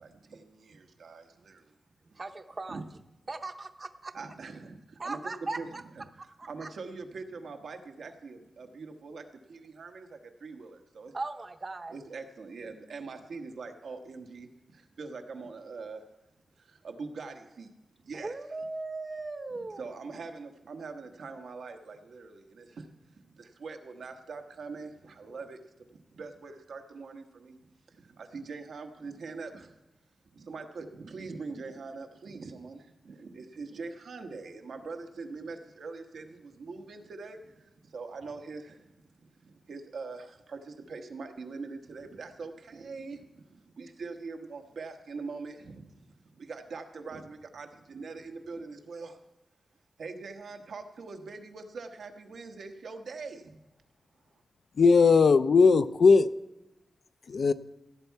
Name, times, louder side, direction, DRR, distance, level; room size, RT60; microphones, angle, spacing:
voice 1, 0.0-1.7 2.7-2.8 4.1-5.2 5.6-5.7 6.5-11.1 11.9-16.1 16.6-17.8 18.0-18.3 19.8-27.6 27.9-29.8 30.3-49.2 50.0-53.6, right 4 dB, 85° right, 1.2 m, -43 dB
voice 2, 2.1-3.0 3.3-4.1 5.0-5.8 6.4-6.7 11.1-11.9 18.2-19.9, right 3 dB, 30° right, 0.7 m, -38 dB
voice 3, 54.8-56.3 57.3-57.5, left 4 dB, 60° left, 0.4 m, -19 dB
16.5 x 8.1 x 4.6 m
wide cardioid pair, 175°, 0 cm